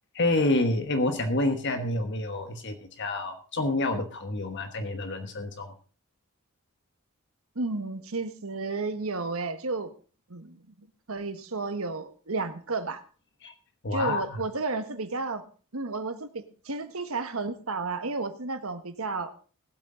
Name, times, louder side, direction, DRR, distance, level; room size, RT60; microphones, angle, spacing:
voice 1, 0.2-5.7 13.4-13.5 13.8-14.2, left 2 dB, 55° left, 7 dB, 1.2 m, -28 dB
voice 2, 7.5-9.9 10.3-10.6 11.1-13.0 13.9-15.4 15.7-19.3, right 3 dB, 80° right, 9 dB, 1.4 m, -32 dB
19.0 x 8.2 x 3.8 m, 0.37 s
head